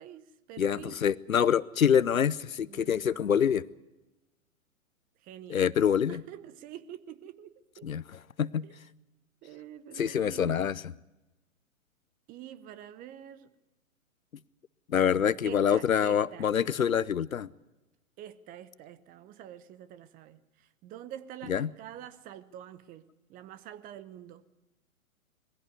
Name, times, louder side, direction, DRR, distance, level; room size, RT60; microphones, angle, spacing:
voice 1, 0.0-1.0 2.7-3.4 5.2-5.7 6.1-7.9 8.6-8.8 9.4-10.7 12.3-13.5 15.4-16.9 18.2-24.5, right 11 dB, 20° right, 0.8 m, -46 dB
voice 2, 0.6-3.6 5.5-6.2 7.8-8.0 8.4-8.7 10.0-10.8 14.9-17.5 21.5-21.7, left 8 dB, 80° left, 0.7 m, -26 dB
21.5 x 16.0 x 9.4 m
figure-of-eight pair, 115°, 40 cm